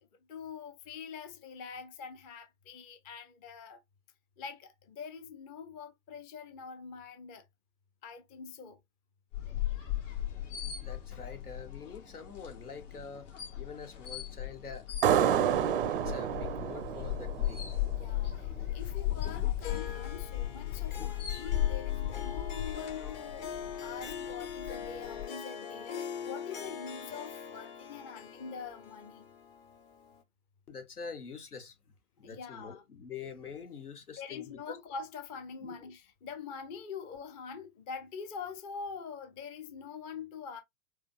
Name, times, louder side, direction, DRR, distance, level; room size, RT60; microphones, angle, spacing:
voice 1, 0.0-3.8 4.4-7.4 8.0-8.8 17.9-29.3 32.2-32.8 34.2-40.6, left 5 dB, 20° left, 0.5 m, -44 dB
sound 1, 9.3-25.2, left 12 dB, 55° left, 1.8 m, -36 dB
voice 2, 10.7-15.6 15.9-17.6 30.7-31.7 32.2-34.8 35.6-35.8, left 5 dB, 85° left, 1.2 m, -45 dB
sound 2, 15.0-18.3, right 10 dB, 40° right, 0.4 m, -29 dB
Harp, 19.6-30.2, left 7 dB, 40° left, 1.0 m, -43 dB
4.9 x 2.1 x 2.4 m
figure-of-eight pair, 110°, 44 cm